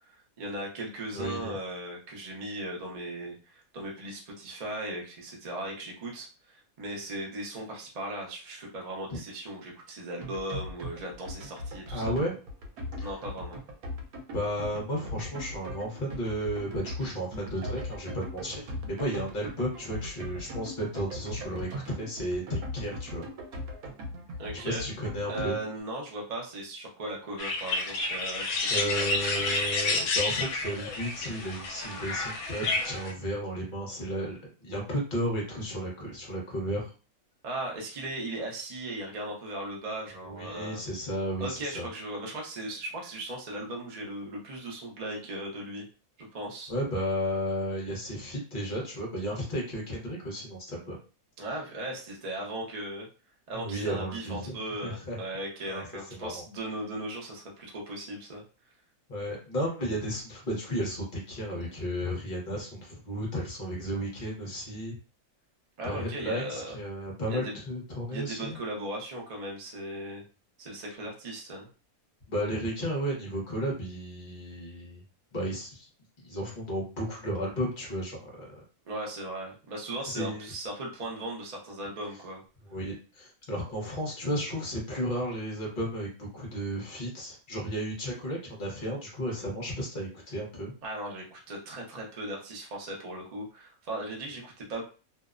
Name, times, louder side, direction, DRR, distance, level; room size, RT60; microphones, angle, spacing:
voice 1, 0.1-12.1 13.0-13.6 24.4-24.9 25.3-28.5 28.7-29.5 37.4-40.8 41.4-45.9 46.3-46.7 51.4-53.1 53.5-58.4 65.8-66.8 67.3-67.6 68.1-70.2 70.6-71.7 78.9-82.4 90.8-94.8, right 1 dB, 45° right, -1 dB, 0.5 m, -37 dB
voice 2, 1.1-1.6 9.1-9.2 11.9-12.3 13.0-13.1 14.3-23.3 24.6-25.5 28.3-36.9 40.2-41.9 46.7-51.0 53.5-54.6 54.8-55.2 55.7-55.8 56.1-56.4 59.1-65.0 65.8-68.6 72.3-75.0 75.3-75.9 76.2-78.5 80.0-80.5 82.7-90.7, equal, 40° left, -2 dB, 0.8 m, -33 dB
sound 1, 10.2-25.8, left 1 dB, 85° right, 1.1 m, -39 dB
sound 2, 27.4-33.1, left 3 dB, 75° left, 1.0 m, -30 dB
2.7 x 2.0 x 2.4 m, 0.36 s
omnidirectional pair, 1.6 m